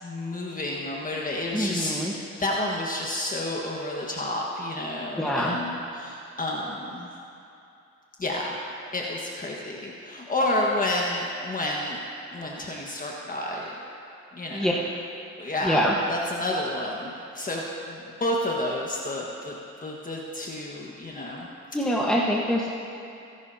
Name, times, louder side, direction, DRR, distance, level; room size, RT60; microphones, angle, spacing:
voice 1, 0.0-7.1 8.2-8.5 8.9-12.0 12.3-13.7 14.3-14.8 15.4-19.5 19.8-21.5, left 1 dB, 25° left, -2 dB, 1.5 m, -30 dB
voice 2, 1.5-2.1 5.2-5.6 14.5-14.7 15.6-15.9 21.7-22.7, equal, ahead, -4 dB, 1.3 m, -24 dB
29.5 x 11.0 x 2.8 m, 2.8 s
cardioid pair, 90°, 30 cm